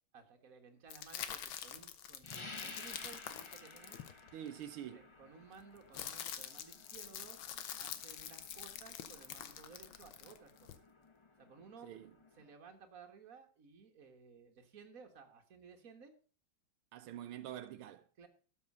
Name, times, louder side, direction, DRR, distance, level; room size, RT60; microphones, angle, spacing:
voice 1, 0.1-4.0 4.9-7.4 7.8-10.7 11.4-11.9 12.4-16.1 18.2-18.3, right 5 dB, 45° right, 1.9 m, -57 dB
sound 1, 0.9-4.6 5.5-10.8, left 9 dB, 75° left, 1.7 m, -46 dB
sound 2, 2.2-12.5, left 3 dB, 45° left, 0.4 m, -55 dB
voice 2, 4.3-5.0 11.8-12.1 16.9-18.1, right 11 dB, 85° right, 1.6 m, -46 dB
12.5 x 7.1 x 5.4 m
omnidirectional pair, 2.3 m